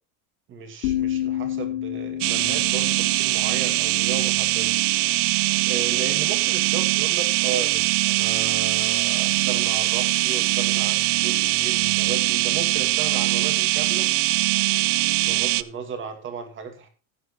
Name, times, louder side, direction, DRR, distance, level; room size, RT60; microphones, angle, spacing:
voice 1, 0.5-4.8 5.7-14.1 15.0-16.9, right 6 dB, 30° right, 7 dB, 2.3 m, -35 dB
sound 1, 0.8-4.7, left 12 dB, 85° left, 1.6 m, -30 dB
sound 2, 2.2-15.6, right 20 dB, 60° right, 0.6 m, -22 dB
14.5 x 9.3 x 3.1 m, 0.36 s
supercardioid pair, 150°, 41 cm